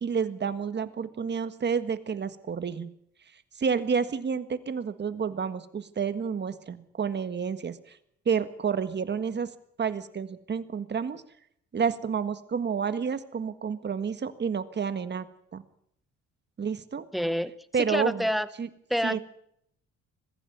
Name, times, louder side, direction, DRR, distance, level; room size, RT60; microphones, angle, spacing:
voice 1, 0.0-2.9 3.3-8.0 8.3-9.5 9.8-11.2 11.7-15.3 15.5-15.6 16.6-17.1 17.7-18.3 18.6-18.7 19.0-19.2, right 6 dB, 35° right, 11 dB, 1.6 m, -30 dB
voice 2, 17.1-17.5 17.9-18.5 18.9-19.2, equal, ahead, 14 dB, 1.1 m, -27 dB
21.0 x 15.5 x 9.3 m, 0.74 s
cardioid pair, 115°, 30 cm